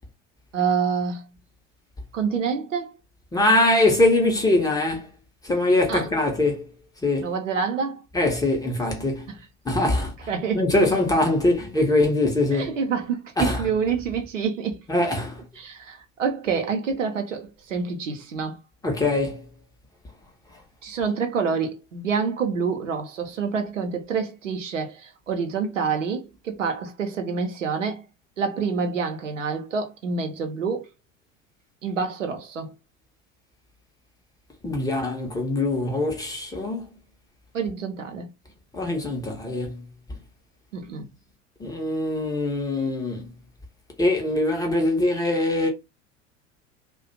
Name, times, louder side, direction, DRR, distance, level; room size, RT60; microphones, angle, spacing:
voice 1, 0.5-1.2 2.1-2.9 5.9-6.1 7.2-8.0 10.3-10.6 12.5-14.8 15.6-18.6 20.8-28.0 28.4-30.9 31.8-32.7 37.5-38.3 40.7-41.1, right 5 dB, 80° right, 0.6 m, -27 dB
voice 2, 3.3-5.1 5.4-6.6 7.0-7.3 8.1-9.3 9.7-10.1 10.5-12.7 13.4-13.6 14.9-15.4 18.8-19.5 34.6-36.9 38.7-39.8 41.6-43.2 44.0-45.7, left 2 dB, 10° left, 0.6 m, -22 dB
2.4 x 2.1 x 2.5 m
figure-of-eight pair, 75°, 37 cm